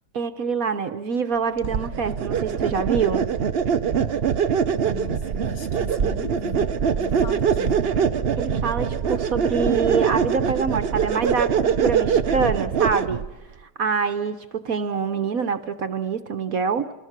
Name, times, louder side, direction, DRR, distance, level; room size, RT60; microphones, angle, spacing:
voice 1, 0.1-3.3 8.3-13.2 13.8-16.9, right 5 dB, 55° right, 10 dB, 1.2 m, -25 dB
sound 1, 1.6-13.3, right 7 dB, 70° right, 0.5 m, -23 dB
voice 2, 4.8-6.7 7.0-7.8, left 8 dB, 60° left, 10 dB, 1.2 m, -38 dB
28.0 x 20.0 x 6.1 m, 1.1 s
omnidirectional pair, 2.3 m